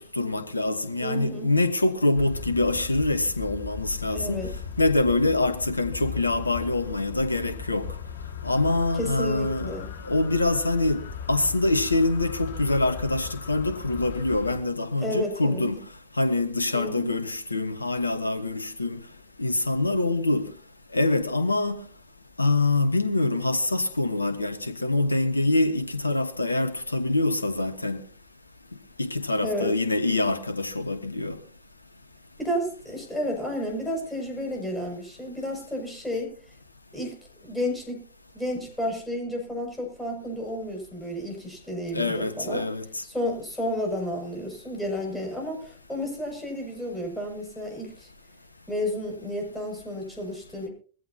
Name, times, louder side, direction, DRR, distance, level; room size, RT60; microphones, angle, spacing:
voice 1, 0.0-4.4 4.8-7.9 8.4-9.8 10.0-15.8 16.2-19.0 19.4-20.5 20.9-21.8 22.4-28.0 29.0-31.4 41.9-43.0, left 2 dB, 80° left, 1.4 m, -25 dB
voice 2, 1.0-1.6 4.1-4.6 9.0-9.9 15.0-15.7 16.7-17.2 29.4-29.7 32.4-36.3 36.9-37.2 37.4-38.1 38.3-42.6 43.0-48.1 48.7-50.7, left 1 dB, 5° left, 7.0 m, -31 dB
sound 1, 2.1-14.6, left 6 dB, 55° left, 2.2 m, -38 dB
21.5 x 15.5 x 2.9 m
figure-of-eight pair, 90°, 0 cm